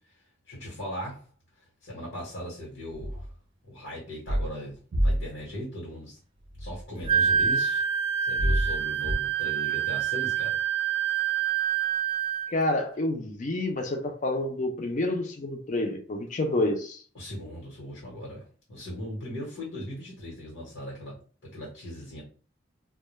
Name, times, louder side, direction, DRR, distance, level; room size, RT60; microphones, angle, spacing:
voice 1, 0.5-1.2 1.8-3.3 3.7-6.2 6.6-7.8 8.2-10.6 17.1-18.4 18.7-21.1 21.4-22.2, equal, 85° left, 1.1 m, -38 dB
sound 1, 2.9-3.3 4.3-4.5 4.9-5.3 6.5-7.5 8.4-9.1, equal, 80° right, 0.5 m, -27 dB
Wind instrument woodwind instrument, 7.1-12.5, right 8 dB, 30° right, 0.3 m, -26 dB
voice 2, 12.5-17.0, left 1 dB, 40° left, 0.4 m, -28 dB
2.2 x 2.1 x 3.0 m
head